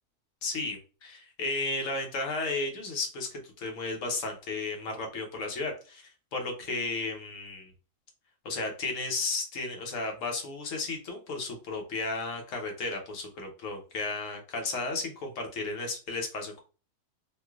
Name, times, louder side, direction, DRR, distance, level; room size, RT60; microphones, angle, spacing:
voice 1, 0.4-7.7 8.4-16.6, left 3 dB, 75° left, 3 dB, 1.1 m, -34 dB
3.1 x 2.5 x 2.3 m, 0.34 s
omnidirectional pair, 1.4 m